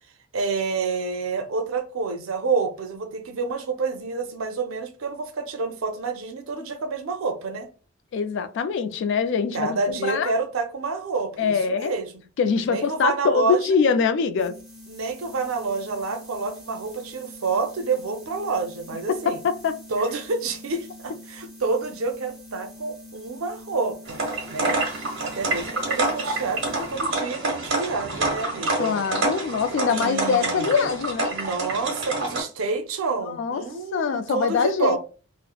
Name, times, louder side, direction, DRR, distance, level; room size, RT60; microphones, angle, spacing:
voice 1, 0.3-7.7 9.5-12.1 12.7-13.8 14.9-19.4 19.9-24.2 24.5-29.0 29.9-30.7 31.3-35.0, right 4 dB, 90° right, 0.5 m, -28 dB
voice 2, 8.1-10.3 11.4-11.9 12.4-14.6 19.1-19.8 28.8-31.4 33.2-33.6 33.9-35.0, left 6 dB, 60° left, 0.3 m, -23 dB
sound 1, 14.3-27.3, left 1 dB, ahead, 0.8 m, -45 dB
sound 2, 24.1-32.4, right 2 dB, 60° right, 1.1 m, -27 dB
3.1 x 2.0 x 2.3 m
head